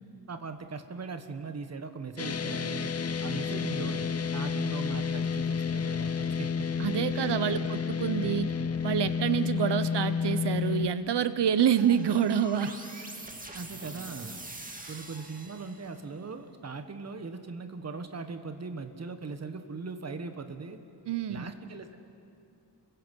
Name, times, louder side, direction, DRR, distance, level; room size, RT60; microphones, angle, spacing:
voice 1, 0.3-6.7 7.2-7.7 8.2-8.7 13.5-14.4 14.9-20.8 21.3-22.0, right 4 dB, 40° right, 7 dB, 1.4 m, -40 dB
sound 1, 2.2-10.9, left 6 dB, 35° left, 0.7 m, -30 dB
voice 2, 6.8-8.5 8.8-12.7 14.8-14.9 21.1-21.5, right 8 dB, 75° right, 13 dB, 1.0 m, -27 dB
sound 2, 11.8-16.1, right 2 dB, 20° right, 2.0 m, -44 dB
29.0 x 23.0 x 5.4 m, 2.5 s
wide cardioid pair, 165°, 41 cm